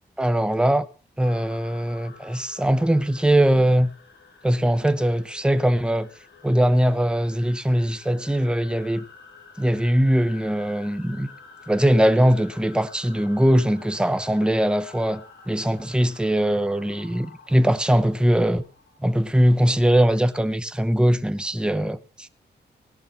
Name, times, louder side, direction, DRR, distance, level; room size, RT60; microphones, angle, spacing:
voice 1, 0.2-0.9 1.2-3.9 4.4-6.1 6.4-9.0 9.6-11.3 11.7-18.6 19.0-22.3, equal, 5° right, 1.0 m, -21 dB
sound 1, 1.2-19.9, left 4 dB, 85° left, 3.7 m, -49 dB
18.0 x 11.5 x 5.8 m
wide cardioid pair, 125°, 18 cm